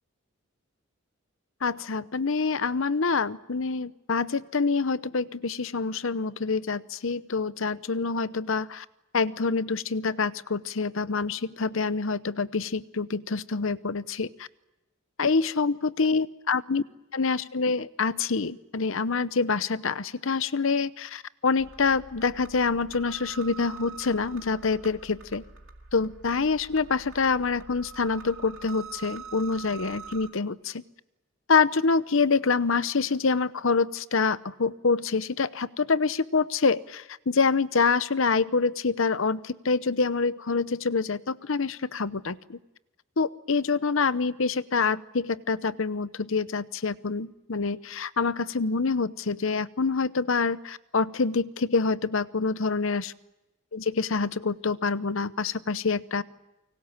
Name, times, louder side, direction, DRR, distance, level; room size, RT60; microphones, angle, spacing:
voice 1, 1.6-8.8 9.1-14.5 15.2-16.8 17.1-25.4 25.9-30.8 31.5-42.6 43.2-53.1 53.7-56.2, left 4 dB, 65° left, 16 dB, 0.8 m, -26 dB
sound 1, 21.6-30.3, right 5 dB, 70° right, 2.4 m, -45 dB
29.5 x 24.5 x 7.4 m, 1.0 s
head